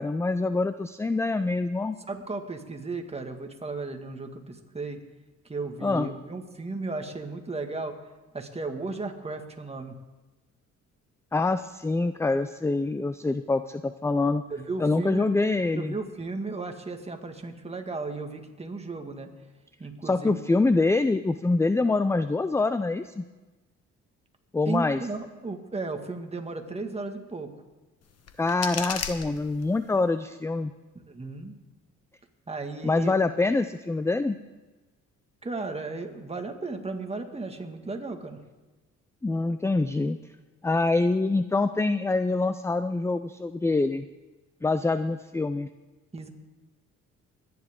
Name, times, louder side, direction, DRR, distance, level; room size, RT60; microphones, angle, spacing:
voice 1, 0.0-2.0 5.8-6.1 11.3-14.4 14.8-15.9 20.0-23.2 24.5-25.0 28.4-30.7 32.8-34.4 39.2-40.2 40.6-44.1 44.6-45.7, left 3 dB, 10° left, 11 dB, 0.4 m, -25 dB
voice 2, 2.1-5.0 5.5-8.0 8.3-10.0 14.5-15.3 15.8-19.3 19.8-20.4 24.7-27.5 31.1-31.5 32.5-33.1 35.4-38.4 46.1-46.3, right 3 dB, 20° right, 4 dB, 1.9 m, -35 dB
sound 1, 28.0-30.0, left 6 dB, 55° left, 1.4 m, -36 dB
24.5 x 10.5 x 3.7 m, 1.2 s
cardioid pair, 90°, 30 cm